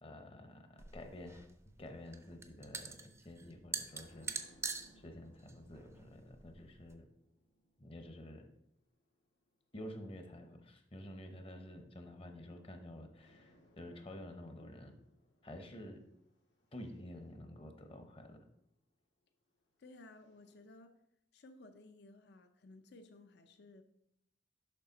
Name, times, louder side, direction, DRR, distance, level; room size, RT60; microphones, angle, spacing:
voice 1, 0.0-1.5 1.8-4.5 5.0-7.1 7.8-8.4 9.7-15.0 15.4-16.0 16.7-18.4, left 1 dB, 30° left, 6 dB, 0.8 m, -50 dB
sound 1, 0.8-6.9, right 4 dB, 15° right, 0.5 m, -45 dB
sound 2, 3.6-10.2 11.0-12.8 13.2-18.5 19.5-20.6, equal, 85° left, 1.8 m, -69 dB
voice 2, 19.8-21.0 21.3-23.8, left 2 dB, 65° left, 8 dB, 0.5 m, -57 dB
6.8 x 5.6 x 3.9 m, 0.76 s
head